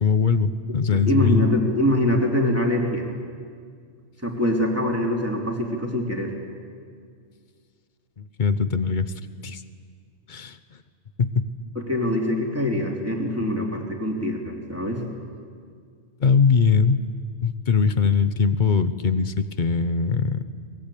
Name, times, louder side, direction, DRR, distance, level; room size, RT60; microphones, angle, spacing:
voice 1, 0.0-1.6 8.2-9.1 9.4-9.6 10.3-10.6 11.2-11.5 16.2-17.0 17.4-20.4, left 5 dB, 45° left, 12 dB, 1.0 m, -21 dB
voice 2, 0.9-3.1 4.2-6.3 11.7-15.1, left 1 dB, 10° right, 0 dB, 3.0 m, -24 dB
23.5 x 21.5 x 8.5 m, 2.1 s
omnidirectional pair, 1.2 m